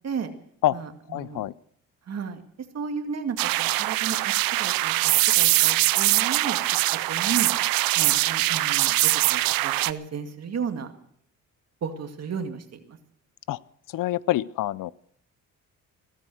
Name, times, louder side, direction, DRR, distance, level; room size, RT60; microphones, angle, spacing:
voice 1, 1.1-1.5 13.5-13.6 13.9-14.9, left 15 dB, 70° left, 21 dB, 0.6 m, -26 dB
voice 2, 2.1-2.4 2.7-4.2 4.4-4.9 5.2-6.6 7.1-7.5 7.9-10.9 11.8-13.0, right 6 dB, 50° right, 6 dB, 2.2 m, -33 dB
sound 1, 3.4-9.9, right 17 dB, 85° right, 0.6 m, -22 dB
16.5 x 13.5 x 6.3 m, 0.66 s
cardioid pair, 105°, 34 cm